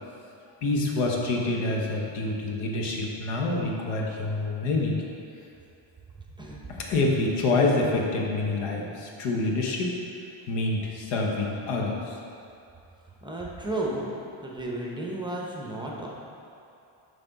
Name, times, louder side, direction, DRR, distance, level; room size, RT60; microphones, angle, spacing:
voice 1, 0.6-5.0 6.7-10.0 10.5-12.2, left 2 dB, 90° left, -1 dB, 1.1 m, -27 dB
voice 2, 6.3-6.6 13.2-14.1 14.4-16.1, right 1 dB, 10° right, -3 dB, 0.7 m, -33 dB
5.8 x 5.4 x 3.9 m, 2.6 s
cardioid pair, 130°, 50 cm